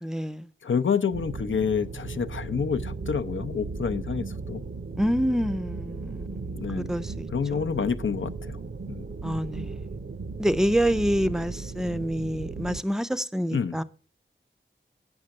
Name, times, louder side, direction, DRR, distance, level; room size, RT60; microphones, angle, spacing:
voice 1, 0.0-0.5 5.0-7.3 7.5-7.6 9.2-9.8 10.4-13.8, equal, ahead, 0.5 m, -27 dB
voice 2, 0.6-4.6 6.5-6.9 7.3-8.6 8.9-9.1 13.5-13.8, left 6 dB, 75° left, 0.6 m, -28 dB
sound 1, 1.1-12.8, right 4 dB, 55° right, 0.6 m, -36 dB
8.8 x 5.9 x 6.4 m
wide cardioid pair, 50°, 20 cm